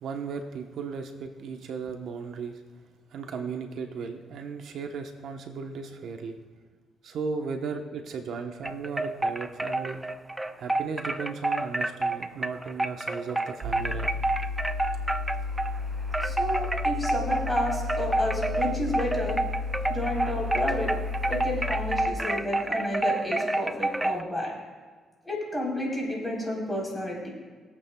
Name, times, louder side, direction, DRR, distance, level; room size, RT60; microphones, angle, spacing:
voice 1, 0.0-2.6 3.1-6.4 7.0-10.0 10.6-14.1, right 5 dB, 70° right, 5 dB, 0.9 m, -36 dB
sound 1, 8.6-15.8 16.1-24.2, right 2 dB, 10° right, 0.5 m, -29 dB
sound 2, 13.6-22.0, left 4 dB, 50° right, 3.6 m, -33 dB
voice 2, 16.2-19.4 19.9-20.9 21.3-24.5 25.2-27.3, left 1 dB, 10° left, -3 dB, 3.7 m, -31 dB
21.5 x 8.3 x 2.3 m, 1.5 s
cardioid pair, 90°, 0 cm